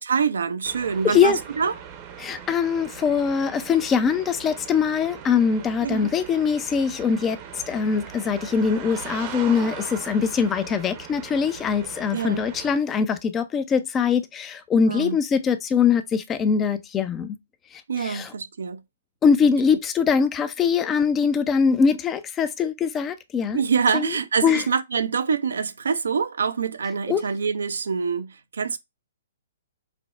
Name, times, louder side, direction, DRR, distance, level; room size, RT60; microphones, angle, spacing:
voice 1, 0.1-1.7 5.8-6.1 12.1-12.4 14.9-15.2 17.9-18.8 23.5-28.8, right 6 dB, 80° right, 0.4 m, -25 dB
sound 1, 0.6-12.8, right 8 dB, 35° right, 0.6 m, -40 dB
voice 2, 1.0-1.4 2.2-17.4 17.7-18.3 19.2-23.6 23.9-24.2 24.4-24.6 27.1-27.2, left 6 dB, 20° left, 0.4 m, -22 dB
4.9 x 2.0 x 2.3 m
hypercardioid pair, 140°, 0 cm